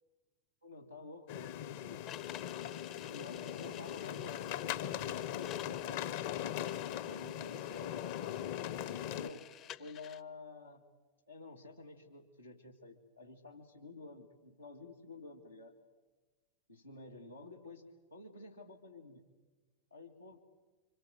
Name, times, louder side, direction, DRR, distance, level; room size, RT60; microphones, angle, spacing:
voice 1, 0.6-2.1 3.0-6.1 6.6-8.4 9.1-9.5 9.8-10.8 11.3-15.7 16.7-19.3 19.9-20.4, left 3 dB, 90° left, -2 dB, 2.3 m, -51 dB
sound 1, 1.3-9.3, left 11 dB, 50° left, 1.1 m, -40 dB
sound 2, 2.1-10.2, left 11 dB, 35° left, 0.9 m, -52 dB
27.5 x 25.5 x 7.8 m, 1.3 s
figure-of-eight pair, 90°, 0 cm